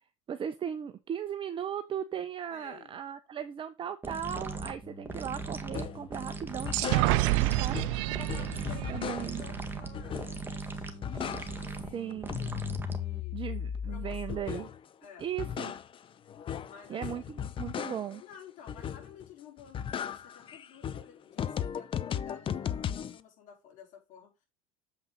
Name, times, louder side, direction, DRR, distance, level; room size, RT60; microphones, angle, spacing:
voice 1, 0.3-7.8 8.9-9.4 11.9-12.3 13.3-14.7 15.2-15.7 16.9-18.2, right 9 dB, 30° right, 0.8 m, -37 dB
voice 2, 2.5-3.0 7.9-12.2 12.8-13.4 13.9-14.7 15.0-15.3 16.5-17.1 17.4-17.5 18.2-24.5, left 8 dB, 50° left, 4.3 m, -53 dB
sound 1, 4.0-13.3, right 3 dB, 10° right, 1.7 m, -40 dB
sound 2, 5.7-6.1 6.5-7.5 7.7-9.5 9.9-10.6 10.9-11.8 12.1-14.8 15.2-18.2 18.7-19.3 19.6-23.2, left 9 dB, 35° left, 0.6 m, -36 dB
sound 3, 6.7-10.4, right 20 dB, 70° right, 0.5 m, -29 dB
7.5 x 5.5 x 4.0 m
hypercardioid pair, 85°, 16 cm